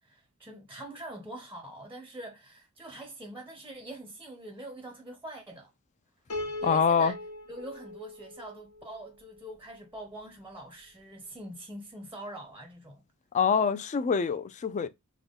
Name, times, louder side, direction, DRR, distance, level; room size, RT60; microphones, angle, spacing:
voice 1, 0.0-5.7 6.6-7.1 7.5-13.0, right 1 dB, 10° right, 0.6 m, -44 dB
Piano, 6.3-9.5, left 2 dB, 90° left, 1.1 m, -40 dB
voice 2, 6.6-7.1 13.3-14.9, left 6 dB, 35° left, 0.3 m, -25 dB
3.7 x 2.2 x 3.4 m
head